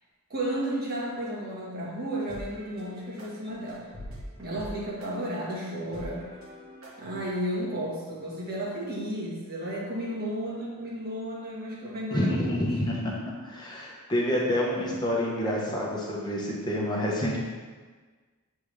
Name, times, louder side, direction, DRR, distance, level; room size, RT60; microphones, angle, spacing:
voice 1, 0.3-3.9 4.4-6.2 7.0-12.7, right 1 dB, 45° right, -5 dB, 1.4 m, -33 dB
sound 1, 2.3-7.3, equal, 65° right, 1.5 m, -45 dB
voice 2, 12.1-13.0 13.4-17.4, left 1 dB, 20° left, -4 dB, 1.0 m, -28 dB
8.4 x 3.6 x 3.2 m, 1.4 s
head